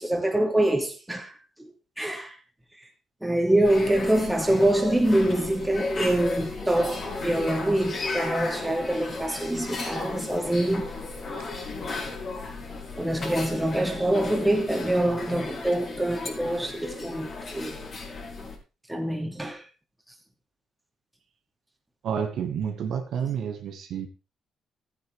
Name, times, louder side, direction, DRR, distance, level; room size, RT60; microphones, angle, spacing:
voice 1, 0.0-1.3 1.6-1.7 2.0-2.4 3.2-10.9 13.0-17.8 18.9-19.6, right 1 dB, 5° right, 2.9 m, -25 dB
sound 1, 3.6-18.6, left 3 dB, 45° left, 5.0 m, -35 dB
voice 2, 22.0-24.1, right 7 dB, 75° right, 2.0 m, -29 dB
14.5 x 9.4 x 3.7 m
cardioid pair, 90°, 0 cm